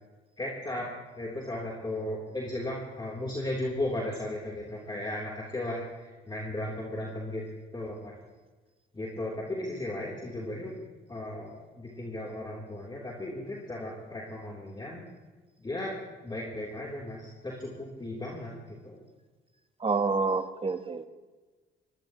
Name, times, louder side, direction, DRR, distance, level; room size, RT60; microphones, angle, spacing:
voice 1, 0.4-0.9 1.2-7.4 7.7-8.1 8.9-10.8 11.1-15.0 15.6-16.0 16.2-19.0, left 1 dB, 20° left, -4 dB, 3.6 m, -36 dB
voice 2, 19.8-21.1, right 4 dB, 30° right, 8 dB, 1.3 m, -28 dB
22.5 x 18.0 x 3.2 m, 1.3 s
cardioid pair, 90°, 20 cm